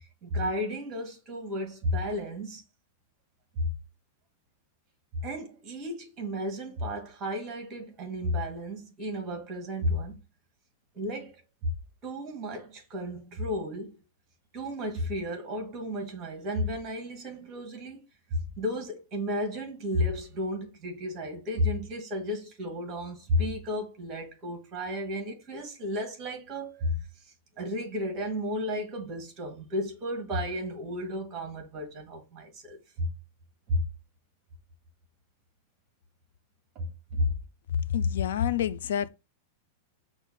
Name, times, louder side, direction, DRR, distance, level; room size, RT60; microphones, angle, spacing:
voice 1, 0.2-2.6 3.5-3.7 5.2-10.2 10.9-11.7 12.0-14.0 14.5-18.0 18.3-27.0 27.6-33.1 33.7-33.8 36.7-37.3, left 1 dB, 25° right, 1.6 m, -33 dB
voice 2, 37.9-39.1, left 9 dB, 85° left, 0.4 m, -27 dB
5.6 x 2.5 x 3.6 m
supercardioid pair, 160°, 0 cm